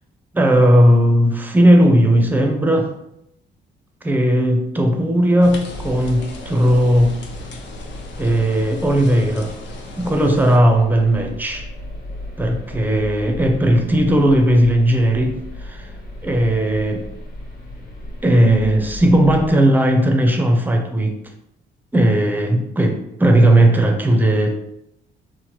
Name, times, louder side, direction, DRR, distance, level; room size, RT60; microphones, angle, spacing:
voice 1, 0.3-2.9 4.0-7.2 8.2-9.5 10.0-11.7 12.4-15.9 16.2-17.1 18.2-21.2 21.9-24.6, right 1 dB, 10° right, 3 dB, 0.4 m, -16 dB
sound 1, 5.4-10.6, left 3 dB, 65° left, 0.5 m, -38 dB
sound 2, 5.4-19.5, left 1 dB, 45° left, 1.1 m, -35 dB
3.0 x 2.1 x 2.9 m, 0.80 s
cardioid pair, 90°, 20 cm